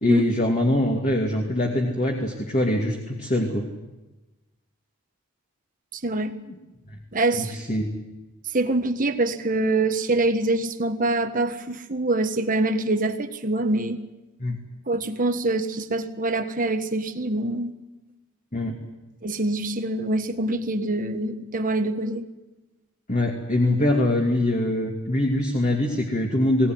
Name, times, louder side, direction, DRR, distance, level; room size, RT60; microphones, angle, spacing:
voice 1, 0.0-3.7 6.5-6.6 7.3-7.9 14.4-14.6 18.5-18.8 23.1-26.7, left 1 dB, 35° left, 0 dB, 2.5 m, -23 dB
voice 2, 5.9-6.3 7.1-7.6 8.5-14.0 14.9-17.7 19.2-22.2, right 2 dB, 35° right, 7 dB, 1.4 m, -25 dB
21.5 x 18.0 x 9.4 m, 1.1 s
head